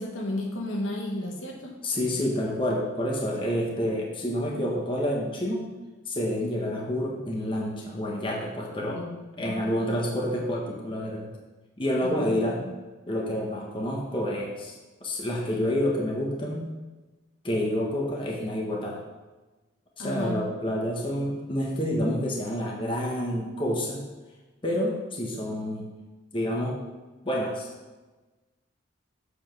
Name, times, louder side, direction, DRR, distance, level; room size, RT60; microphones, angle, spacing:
voice 1, 0.0-1.7 8.9-9.6 12.0-12.7 20.0-20.4, left 1 dB, 70° left, 0 dB, 1.3 m, -33 dB
voice 2, 1.8-5.6 6.1-9.0 9.4-11.3 11.8-12.6 13.1-14.7 15.0-16.7 17.4-19.0 20.0-24.0 24.6-25.9 26.3-26.8 27.2-27.7, equal, 25° left, -2 dB, 1.2 m, -28 dB
7.3 x 5.0 x 6.0 m, 1.2 s
head